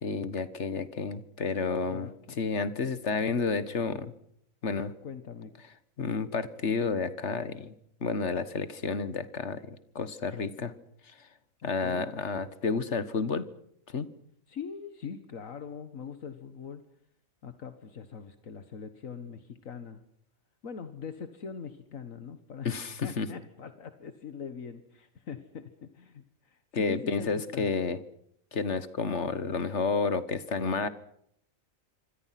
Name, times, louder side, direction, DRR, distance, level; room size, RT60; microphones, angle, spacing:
voice 1, 0.0-2.1 2.4-4.1 4.6-4.9 6.0-7.7 8.0-10.7 11.6-13.4 13.9-14.1 22.6-23.3 26.7-28.0 28.5-30.9, left 4 dB, 60° left, 14 dB, 1.7 m, -30 dB
voice 2, 1.8-2.4 5.0-5.6 11.6-12.1 14.5-16.8 17.4-20.0 20.6-22.7 23.0-27.7, left 6 dB, 75° left, 9 dB, 1.8 m, -42 dB
27.0 x 25.5 x 5.9 m, 0.71 s
omnidirectional pair, 1.4 m